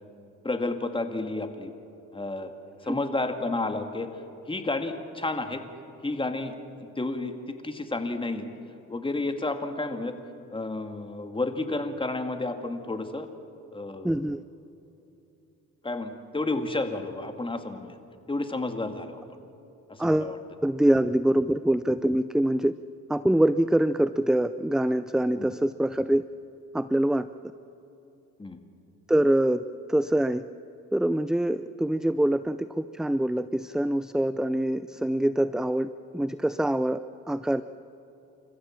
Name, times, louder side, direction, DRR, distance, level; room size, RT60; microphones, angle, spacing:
voice 1, 0.4-1.7 2.1-2.5 2.8-4.1 4.5-5.7 6.0-8.5 8.9-10.2 10.5-13.3 13.7-14.2 15.8-18.0 18.3-19.2 19.9-20.4 25.4-25.5 28.4-28.6, left 2 dB, 15° left, 6 dB, 2.0 m, -31 dB
voice 2, 14.0-14.4 20.0-20.4 20.6-22.7 23.1-26.2 26.7-27.3 29.1-29.6 29.9-30.4 30.9-37.0 37.3-37.6, right 1 dB, ahead, 13 dB, 0.5 m, -24 dB
30.0 x 15.0 x 7.3 m, 2.9 s
cardioid pair, 90°, 30 cm